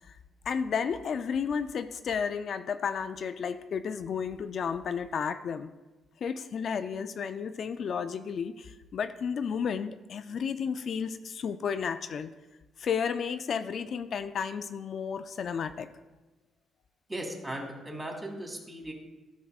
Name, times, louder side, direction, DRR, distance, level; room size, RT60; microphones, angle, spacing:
voice 1, 0.5-5.7 6.2-12.3 12.8-15.9, left 6 dB, 60° left, 10 dB, 0.3 m, -32 dB
voice 2, 17.1-18.9, right 1 dB, 20° right, 1 dB, 2.1 m, -37 dB
12.0 x 6.1 x 2.4 m, 1.1 s
cardioid pair, 90°, 0 cm